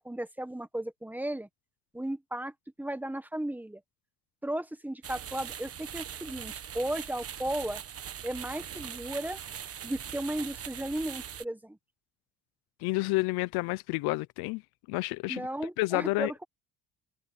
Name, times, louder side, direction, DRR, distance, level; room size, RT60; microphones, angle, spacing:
voice 1, 0.0-1.5 1.9-2.5 2.8-3.8 4.4-7.8 8.2-9.4 9.8-11.8 15.3-16.4, right 1 dB, 5° right, 1.5 m, -35 dB
sound 1, 5.0-11.4, right 9 dB, 40° right, 1.4 m, -41 dB
voice 2, 12.8-14.6 14.9-15.5 15.8-16.3, left 22 dB, 85° left, 0.7 m, -29 dB
cardioid pair, 115°, 37 cm